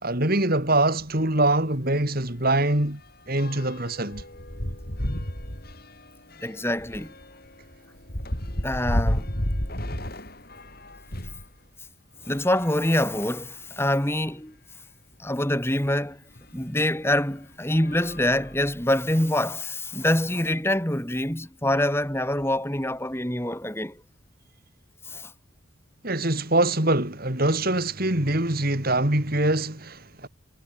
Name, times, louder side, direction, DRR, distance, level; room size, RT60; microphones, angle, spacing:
voice 1, 0.0-3.0 3.3-4.2 26.0-30.3, right 2 dB, 45° right, 3.1 m, -23 dB
sound 1, 1.0-1.2 1.5-1.6 2.0-11.5 12.2-13.5 14.2-14.3 14.6-14.7 16.4-16.5 17.1-17.3 17.8-19.0, equal, 45° left, 6.7 m, -33 dB
voice 2, 6.4-7.1 8.6-9.3 12.3-14.6 15.2-16.2 16.5-24.0 25.1-25.3, left 1 dB, 10° left, 3.6 m, -25 dB
head